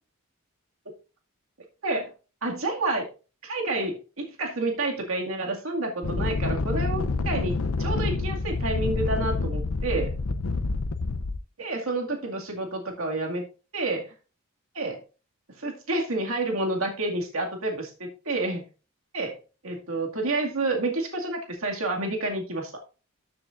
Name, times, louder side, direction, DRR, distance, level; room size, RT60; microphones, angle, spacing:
voice 1, 2.4-3.1 3.4-10.1 11.6-13.4 13.7-14.1 14.7-15.0 15.6-18.6 19.1-19.4 19.6-22.7, right 2 dB, 70° right, 1 dB, 2.2 m, -29 dB
sound 1, 6.0-11.4, left 3 dB, 80° left, 0.7 m, -27 dB
13.0 x 6.8 x 2.5 m, 0.34 s
head